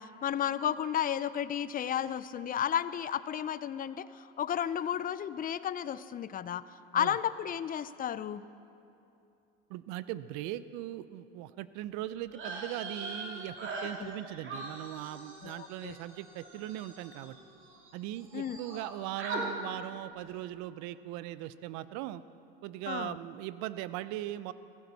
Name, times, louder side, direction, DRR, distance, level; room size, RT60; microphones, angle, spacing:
voice 1, 0.0-6.6 6.9-8.5 14.0-14.1 15.4-16.0 18.3-18.6 22.9-23.2, left 9 dB, 30° left, 16 dB, 0.5 m, -33 dB
voice 2, 9.7-17.4 17.9-22.2 22.6-24.5, right 14 dB, 65° right, 15 dB, 0.6 m, -39 dB
sound 1, 12.3-17.9 18.2-18.9 19.2-19.4, right 3 dB, 40° right, 2.8 m, -42 dB
17.5 x 15.5 x 4.1 m, 2.7 s
supercardioid pair, 90°, 31 cm